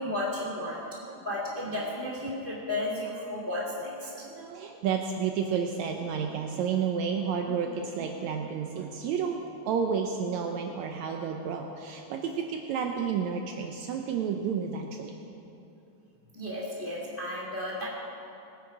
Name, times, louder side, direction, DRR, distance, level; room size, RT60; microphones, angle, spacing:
voice 1, 0.0-0.8 1.2-4.1 16.3-17.9, left 1 dB, 20° left, -5 dB, 1.8 m, -33 dB
voice 2, 4.0-9.4 9.7-15.1, right 6 dB, 75° right, 3 dB, 2.0 m, -31 dB
22.0 x 8.6 x 4.9 m, 2.9 s
omnidirectional pair, 3.4 m